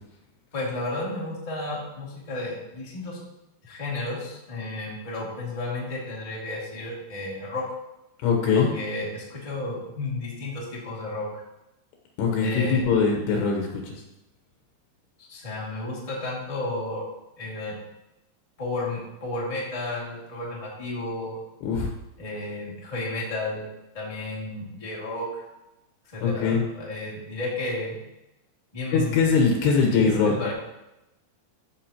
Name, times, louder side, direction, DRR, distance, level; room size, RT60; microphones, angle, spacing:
voice 1, 0.5-3.2 3.6-7.6 8.5-11.3 12.4-12.9 15.3-17.0 17.4-17.7 18.6-21.4 22.2-23.6 23.9-25.4 26.0-28.0 28.7-29.2 29.8-29.9 30.2-30.5, left 2 dB, 20° left, -6 dB, 1.0 m, -32 dB
voice 2, 8.2-8.7 12.2-14.0 21.6-21.9 26.2-26.6 28.9-30.3, left 5 dB, 75° left, 0 dB, 3.0 m, -22 dB
14.5 x 6.1 x 2.9 m, 0.92 s
omnidirectional pair, 5.1 m